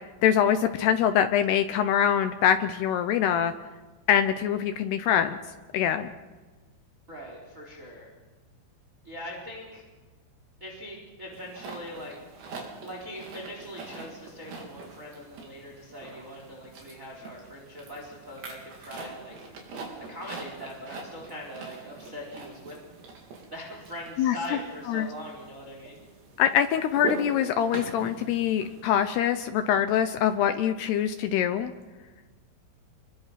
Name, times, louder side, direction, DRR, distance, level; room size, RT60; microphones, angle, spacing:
voice 1, 0.2-3.5 4.1-5.4 5.7-6.1 24.2-24.4 24.9-25.1 26.4-31.7, left 9 dB, 85° left, 9 dB, 2.3 m, -24 dB
voice 2, 7.1-8.1 9.0-9.8 10.6-12.1 12.8-19.3 20.1-22.7 23.5-26.0, equal, 15° right, 0 dB, 3.9 m, -41 dB
sound 1, 11.3-28.8, right 3 dB, 60° right, 6.1 m, -43 dB
28.5 x 22.5 x 5.8 m, 1.3 s
omnidirectional pair, 5.8 m